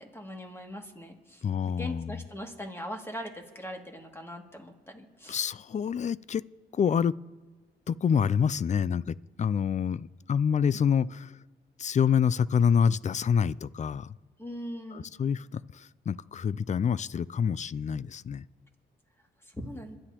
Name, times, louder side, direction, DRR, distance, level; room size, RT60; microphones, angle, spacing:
voice 1, 0.0-5.4 14.4-15.1 19.4-20.0, equal, 15° left, 2.4 m, -41 dB
voice 2, 1.4-2.2 5.3-6.4 6.7-7.1 7.9-11.3 11.8-14.2 14.9-18.4, left 7 dB, 40° left, 0.4 m, -27 dB
27.0 x 11.5 x 3.0 m
supercardioid pair, 60°, 19 cm